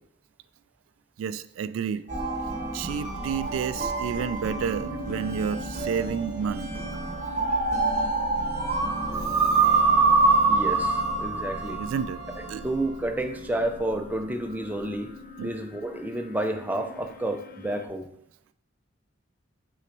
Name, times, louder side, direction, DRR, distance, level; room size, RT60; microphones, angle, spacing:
voice 1, 1.2-2.1 2.7-6.8 11.8-12.2 12.5-12.6 15.4-15.5, right 7 dB, 90° right, 0.3 m, -30 dB
sound 1, 2.1-13.1, right 3 dB, 40° right, 1.0 m, -26 dB
sound 2, 4.5-17.9, left 3 dB, 45° left, 0.6 m, -44 dB
voice 2, 10.5-11.8 12.6-15.1 15.4-18.1, right 1 dB, 10° right, 0.5 m, -30 dB
6.0 x 3.9 x 4.5 m
head